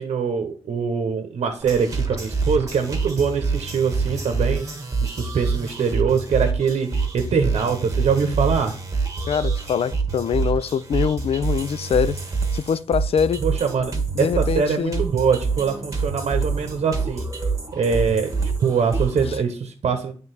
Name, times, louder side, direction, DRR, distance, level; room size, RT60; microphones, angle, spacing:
voice 1, 0.0-4.7 5.0-8.8 13.4-13.9 14.2-17.3 17.7-18.3 18.6-20.1, right 6 dB, 70° right, 0.9 m, -23 dB
sound 1, 1.6-19.4, right 4 dB, 30° right, 1.3 m, -26 dB
voice 2, 9.3-12.2 12.5-13.4 14.1-15.0, left 7 dB, 60° left, 0.4 m, -23 dB
8.8 x 3.6 x 4.1 m
cardioid pair, 80°, 11 cm